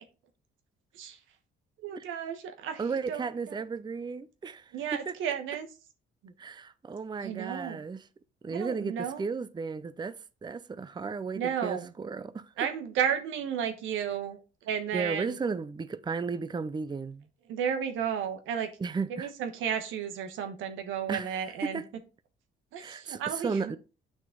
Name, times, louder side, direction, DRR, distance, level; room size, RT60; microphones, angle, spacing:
voice 1, 1.8-2.8 3.1-3.3 4.7-5.7 6.2-6.3 7.2-7.8 8.5-9.2 11.3-11.9 12.6-14.4 14.6-15.4 17.5-18.7 19.1-21.8 22.7-23.6, right 8 dB, 90° right, 1.2 m, -33 dB
voice 2, 2.8-5.1 6.4-8.1 8.4-12.5 14.9-17.3 18.8-19.3 21.1-21.9 22.8-23.8, right 5 dB, 20° right, 0.5 m, -34 dB
7.6 x 6.1 x 3.8 m
cardioid pair, 90°, 20 cm